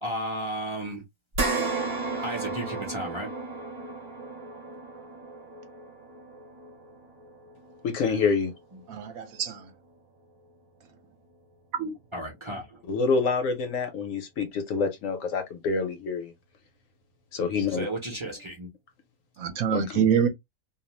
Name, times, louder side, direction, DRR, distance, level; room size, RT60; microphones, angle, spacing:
voice 1, 0.0-1.0 2.2-3.3 8.7-8.8 12.1-12.8 17.7-18.7, right 1 dB, 30° right, 0.6 m, -34 dB
sound 1, 1.3-10.0 10.4-10.5 12.0-12.1, right 3 dB, 50° right, 1.0 m, -35 dB
voice 2, 7.8-8.5 12.9-16.3 17.3-17.9 19.7-20.1, left 4 dB, 65° left, 1.0 m, -27 dB
voice 3, 8.9-9.7 11.8-11.9 19.4-20.3, right 7 dB, 70° right, 1.0 m, -25 dB
2.6 x 2.0 x 3.0 m
omnidirectional pair, 1.5 m